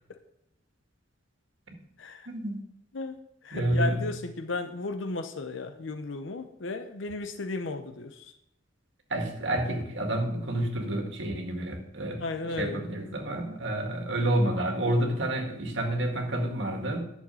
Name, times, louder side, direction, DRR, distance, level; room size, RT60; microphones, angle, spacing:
voice 1, 2.3-2.6 3.5-4.0 9.1-17.0, right 1 dB, 70° right, 3 dB, 1.9 m, -29 dB
voice 2, 2.9-8.3 12.2-12.8, left 3 dB, 75° left, 8 dB, 0.7 m, -34 dB
11.0 x 6.5 x 5.5 m, 0.81 s
head